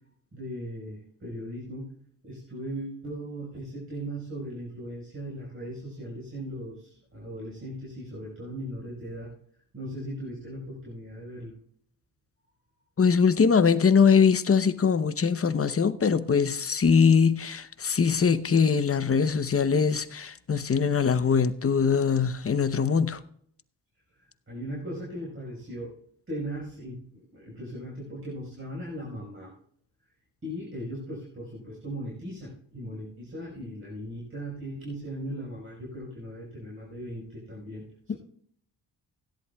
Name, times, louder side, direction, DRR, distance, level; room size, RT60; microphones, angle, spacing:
voice 1, 0.3-1.9 2.2-9.3 9.7-11.5 24.2-25.9 26.3-27.0 27.3-29.5 30.4-38.1, equal, 30° right, 5.0 m, -38 dB
voice 2, 13.0-23.2, left 6 dB, 35° left, 0.8 m, -22 dB
17.0 x 11.0 x 2.3 m
cardioid pair, 70°, 41 cm